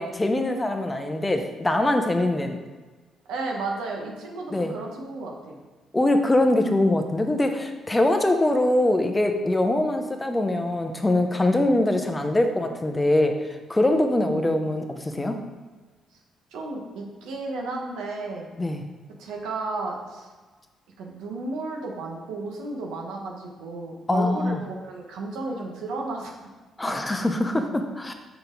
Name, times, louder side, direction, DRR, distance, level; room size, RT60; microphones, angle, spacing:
voice 1, 0.0-2.6 4.5-4.7 5.9-15.4 18.6-18.8 24.1-24.6 26.8-28.1, left 1 dB, 15° left, 5 dB, 0.7 m, -23 dB
voice 2, 3.2-5.6 11.4-11.7 14.2-14.8 16.5-18.5 19.2-20.3 21.0-26.3 26.9-27.0, right 3 dB, 90° right, 0 dB, 1.3 m, -33 dB
6.5 x 5.8 x 3.9 m, 1.3 s
cardioid pair, 90°, 0 cm